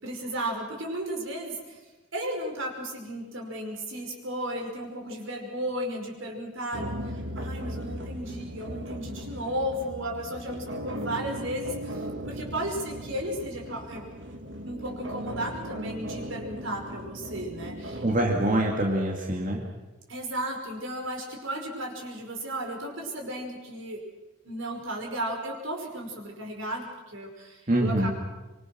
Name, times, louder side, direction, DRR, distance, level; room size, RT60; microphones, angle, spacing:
voice 1, 0.0-1.8 2.1-14.0 14.6-18.4 20.1-24.0 24.4-28.1, right 1 dB, 80° right, 1 dB, 5.5 m, -34 dB
sound 1, 6.7-18.6, equal, 60° right, 2.2 m, -38 dB
voice 2, 18.0-19.6 27.7-28.1, right 1 dB, 40° right, -1 dB, 2.4 m, -24 dB
25.0 x 24.0 x 6.3 m, 1.1 s
head